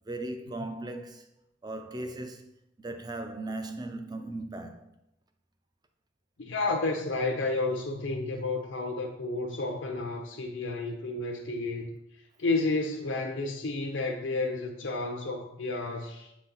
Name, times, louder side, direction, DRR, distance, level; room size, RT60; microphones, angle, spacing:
voice 1, 0.1-1.3 1.6-2.5 2.8-4.9, right 2 dB, 20° right, 0.5 m, -37 dB
voice 2, 6.4-11.9 12.4-16.3, left 3 dB, 60° left, 0.6 m, -31 dB
7.7 x 4.1 x 3.9 m
head